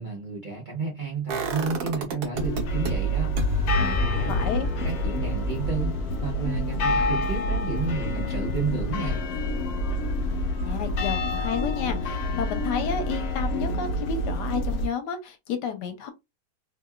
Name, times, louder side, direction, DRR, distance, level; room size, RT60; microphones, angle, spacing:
voice 1, 0.0-3.3 3.7-9.2, right 4 dB, 40° right, 0.7 m, -32 dB
sound 1, 1.3-2.9 3.4-9.2 9.5-9.6, left 1 dB, 75° right, 1.2 m, -31 dB
sound 2, 2.3-14.9, equal, 70° left, 1.1 m, -28 dB
voice 2, 4.3-4.7 10.6-16.1, left 7 dB, 85° left, 1.3 m, -31 dB
2.8 x 2.7 x 2.3 m
omnidirectional pair, 1.8 m